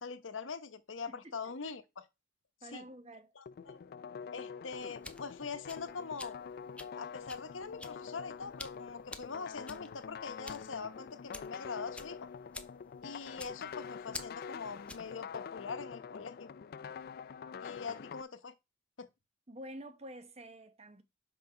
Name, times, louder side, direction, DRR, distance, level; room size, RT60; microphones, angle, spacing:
voice 1, 0.0-2.1 2.7-2.8 3.4-3.8 4.3-6.4 6.9-12.2 13.0-16.5 17.6-18.5 19.0-19.1, left 5 dB, 80° left, 0.9 m, -43 dB
voice 2, 1.1-1.6 2.6-3.3 19.5-21.0, right 1 dB, 35° right, 1.0 m, -49 dB
sound 1, 3.5-18.2, left 6 dB, 50° left, 0.4 m, -46 dB
sound 2, 4.7-15.2, left 2 dB, 5° left, 0.6 m, -50 dB
5.9 x 5.1 x 5.6 m
head